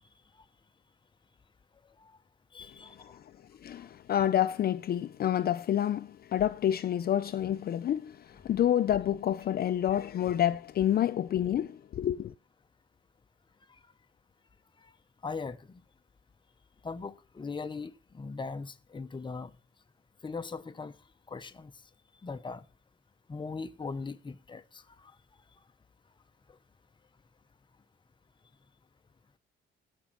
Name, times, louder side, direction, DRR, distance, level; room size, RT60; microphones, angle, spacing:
voice 1, 2.5-3.2 15.2-15.8 16.8-19.5 20.2-20.9 21.3-21.7 22.2-22.6 23.3-24.8, left 4 dB, 25° left, 0.8 m, -39 dB
voice 2, 3.6-12.3, left 11 dB, 50° left, 0.5 m, -28 dB
13.0 x 5.4 x 6.1 m
cardioid pair, 90°, 20 cm